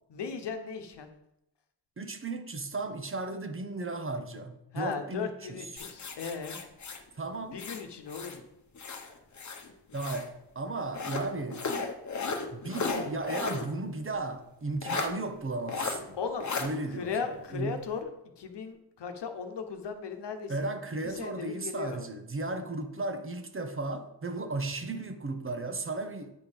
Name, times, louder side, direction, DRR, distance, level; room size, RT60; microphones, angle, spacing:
voice 1, 0.1-1.1 4.7-6.6 7.5-8.4 12.8-13.1 16.2-16.5 16.9-20.7 21.0-22.0, left 6 dB, 80° left, 1.1 m, -37 dB
voice 2, 2.0-5.9 7.1-7.6 9.9-11.7 12.5-16.2 16.6-17.8 20.5-26.3, right 2 dB, 30° right, 0.9 m, -35 dB
sound 1, 5.8-8.4 8.8-10.3 10.9-13.7 14.0-14.1 14.8-15.1 15.7-16.0 16.4-16.7, left 4 dB, 45° left, 1.0 m, -35 dB
9.4 x 4.4 x 5.2 m
wide cardioid pair, 110°, 41 cm